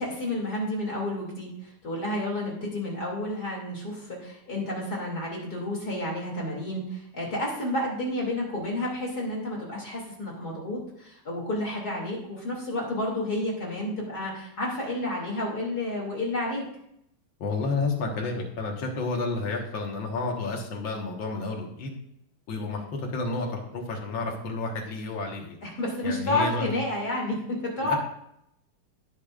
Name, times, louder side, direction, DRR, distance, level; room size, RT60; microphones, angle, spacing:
voice 1, 0.0-16.6 25.6-28.0, left 1 dB, 30° left, -3 dB, 2.6 m, -30 dB
voice 2, 17.4-21.9 22.5-25.6 26.0-26.7 27.8-28.0, left 3 dB, 65° left, 0 dB, 1.2 m, -31 dB
18.5 x 7.2 x 2.5 m, 0.76 s
omnidirectional pair, 4.5 m